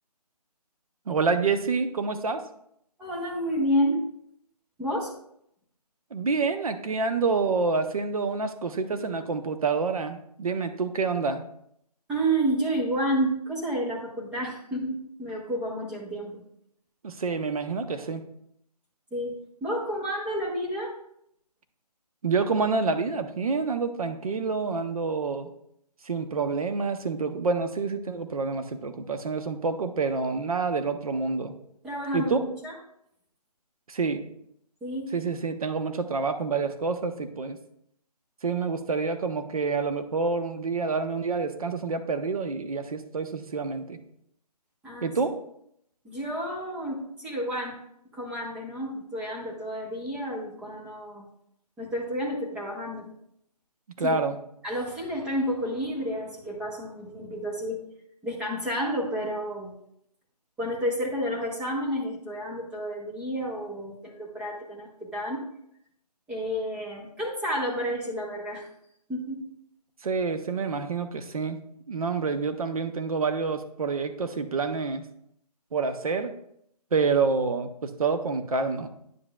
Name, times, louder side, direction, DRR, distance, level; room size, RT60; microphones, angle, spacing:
voice 1, 1.1-2.4 6.1-11.4 17.0-18.2 22.2-25.5 26.0-31.5 32.1-32.4 33.9-34.2 35.1-37.6 38.4-44.0 45.0-45.4 54.0-54.4 70.0-71.6 71.9-75.0 75.7-76.3 76.9-78.9, right 4 dB, 60° right, 8 dB, 0.9 m, -27 dB
voice 2, 3.0-4.0 4.8-5.1 12.1-16.4 19.1-21.0 31.8-32.7 34.8-35.1 44.8-45.1 46.0-47.8 48.1-51.3 51.8-53.1 54.0-54.2 54.6-57.9 58.2-59.7 60.6-65.5 66.3-68.7 69.1-69.5, equal, 5° right, -4 dB, 0.7 m, -30 dB
9.5 x 7.6 x 2.3 m, 0.74 s
figure-of-eight pair, 155°, 21 cm